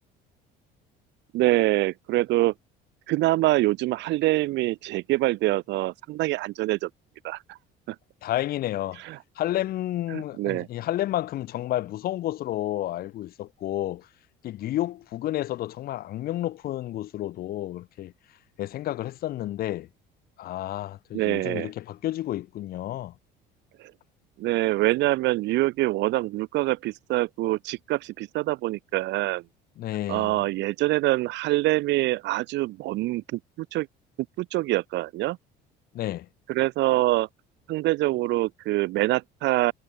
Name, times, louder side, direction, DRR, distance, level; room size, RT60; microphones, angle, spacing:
voice 1, 1.3-2.5 3.1-6.9 7.2-7.6 7.9-8.0 9.0-9.2 10.1-10.7 21.1-21.7 23.8-23.9 24.4-29.4 30.1-33.9 34.4-35.4 36.5-37.3 37.7-39.7, right 18 dB, 70° right, 1.2 m, -25 dB
voice 2, 8.2-9.0 9.4-14.1 14.4-18.1 18.6-19.9 20.4-23.1 29.8-30.4 35.9-36.3, left 14 dB, 50° left, 0.7 m, -30 dB
cardioid pair, 115°, 19 cm